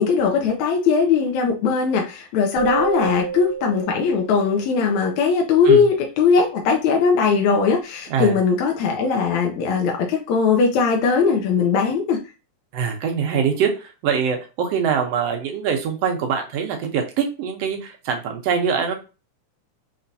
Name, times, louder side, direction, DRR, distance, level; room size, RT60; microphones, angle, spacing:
voice 1, 0.0-12.2, left 5 dB, 75° left, 1 dB, 2.0 m, -19 dB
sound 1, 2.6-5.2, right 7 dB, 85° right, 1.3 m, -30 dB
voice 2, 12.7-18.9, right 7 dB, 70° right, 3 dB, 1.7 m, -23 dB
5.6 x 3.1 x 2.6 m, 0.31 s
omnidirectional pair, 3.4 m